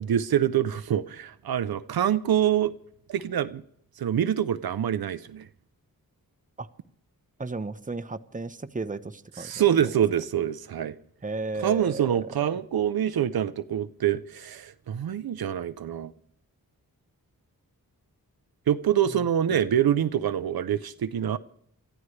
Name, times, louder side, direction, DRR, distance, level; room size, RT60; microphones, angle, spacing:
voice 1, 0.0-2.7 3.1-3.6 4.0-5.5 9.4-10.9 11.6-16.1 18.7-21.4, right 10 dB, 80° right, 0.6 m, -25 dB
voice 2, 7.4-9.7 11.2-12.6 19.5-19.6, right 3 dB, 20° right, 0.8 m, -34 dB
24.5 x 14.0 x 3.2 m
wide cardioid pair, 70°, 36 cm